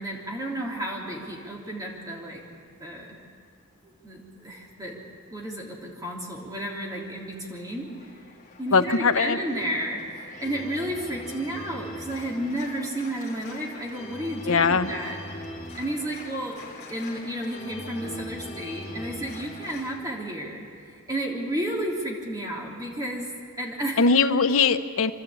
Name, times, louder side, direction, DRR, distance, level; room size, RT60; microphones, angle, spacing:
voice 1, 0.0-2.4 2.8-3.2 4.0-5.0 5.3-7.9 8.6-15.2 15.7-23.3 23.6-24.0, right 1 dB, 15° right, -2 dB, 3.2 m, -32 dB
Organ, 6.8-19.9, left 1 dB, 35° left, 3.0 m, -41 dB
voice 2, 8.7-9.4 14.5-14.9 24.0-25.1, left 4 dB, 70° left, 9 dB, 0.8 m, -20 dB
26.5 x 12.5 x 8.6 m, 2.3 s
head